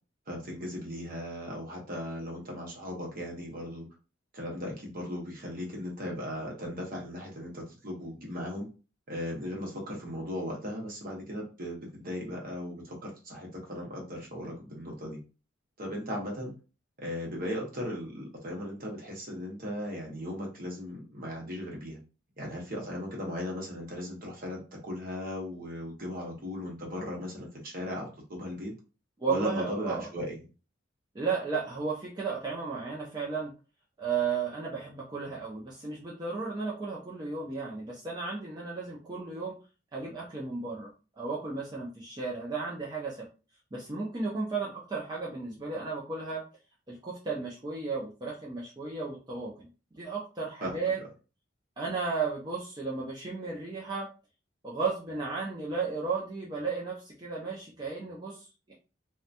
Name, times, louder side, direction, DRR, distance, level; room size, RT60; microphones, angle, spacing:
voice 1, 0.3-3.9 4.3-8.7 9.1-15.2 15.8-16.5 17.0-22.0 22.4-28.7 29.3-30.4 50.6-50.9, left 1 dB, 50° right, -1 dB, 1.0 m, -37 dB
voice 2, 29.2-30.1 31.1-33.5 34.0-39.6 39.9-40.9 41.2-43.2 43.7-46.4 46.9-49.7 49.9-51.0 51.8-54.1 54.6-58.7, right 4 dB, 20° right, -4 dB, 0.5 m, -34 dB
2.8 x 2.2 x 2.5 m, 0.33 s
head